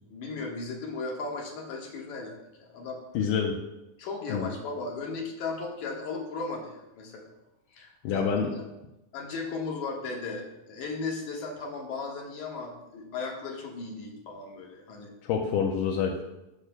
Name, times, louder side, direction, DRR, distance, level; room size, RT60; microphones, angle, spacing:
voice 1, 0.1-3.0 4.0-7.3 7.7-8.2 9.1-15.1, left 3 dB, 65° left, 0 dB, 2.5 m, -36 dB
voice 2, 3.2-3.6 4.3-4.5 8.0-8.5 15.2-16.2, left 6 dB, 80° left, 0 dB, 2.2 m, -27 dB
15.5 x 6.6 x 2.2 m, 0.93 s
omnidirectional pair, 3.8 m